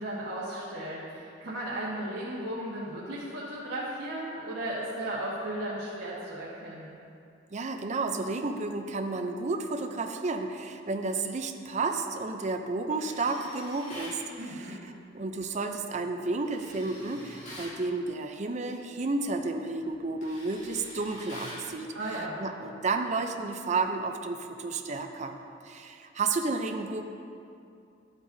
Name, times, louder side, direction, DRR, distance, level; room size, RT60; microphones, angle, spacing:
voice 1, 0.0-6.9 14.4-14.8 21.9-22.4, right 1 dB, 85° right, -7 dB, 1.3 m, -35 dB
voice 2, 7.5-14.8 15.1-21.9 22.4-25.3 25.6-27.0, right 3 dB, 40° right, 5 dB, 0.5 m, -32 dB
Tools, 12.9-14.2 16.4-17.8 19.3-19.5 19.8-21.7, left 1 dB, 40° left, 1.9 m, -46 dB
12.0 x 7.9 x 2.7 m, 2.5 s
head